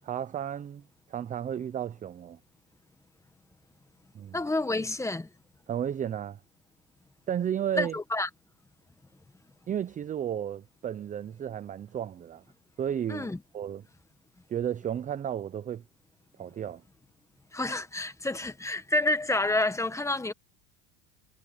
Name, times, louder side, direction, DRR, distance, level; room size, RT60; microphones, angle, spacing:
voice 1, 0.0-0.8 1.1-2.4 4.1-4.4 5.7-6.4 7.3-7.9 9.7-12.4 12.8-13.3 13.5-13.8 14.5-15.8 16.4-16.8, right 9 dB, 20° right, 0.5 m, -33 dB
voice 2, 4.3-5.3 7.7-8.3 13.1-13.4 17.5-20.3, left 2 dB, 5° left, 1.5 m, -29 dB
supercardioid pair, 130°, 39 cm